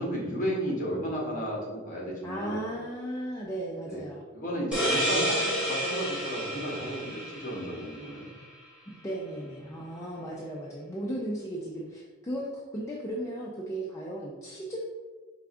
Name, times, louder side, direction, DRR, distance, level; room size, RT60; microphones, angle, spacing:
voice 1, 0.0-2.7 3.9-4.0 4.3-8.3, equal, 40° left, -2 dB, 1.0 m, -33 dB
voice 2, 2.2-4.2 8.9-14.8, right 1 dB, 15° left, -4 dB, 0.4 m, -36 dB
sound 1, 4.7-8.2, equal, 5° right, 1.2 m, -30 dB
4.7 x 3.3 x 2.5 m, 1.4 s
head